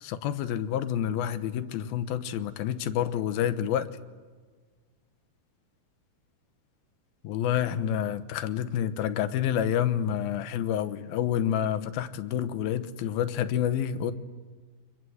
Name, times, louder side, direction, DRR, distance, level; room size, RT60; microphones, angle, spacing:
voice 1, 0.0-3.9 7.2-14.1, left 10 dB, 75° left, 11 dB, 2.8 m, -28 dB
29.0 x 24.5 x 8.0 m, 1.4 s
omnidirectional pair, 4.5 m